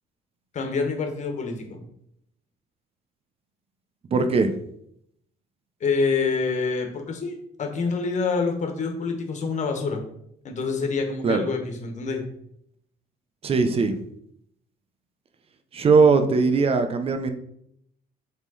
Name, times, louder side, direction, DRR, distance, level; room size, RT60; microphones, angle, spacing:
voice 1, 0.5-1.8 5.8-10.0 10.4-12.2, left 4 dB, 45° left, 4 dB, 1.6 m, -26 dB
voice 2, 4.1-4.5 11.2-11.5 13.4-13.9 15.7-17.3, right 4 dB, 35° right, 8 dB, 0.8 m, -20 dB
7.7 x 3.8 x 4.2 m, 0.73 s
cardioid pair, 110°, 17 cm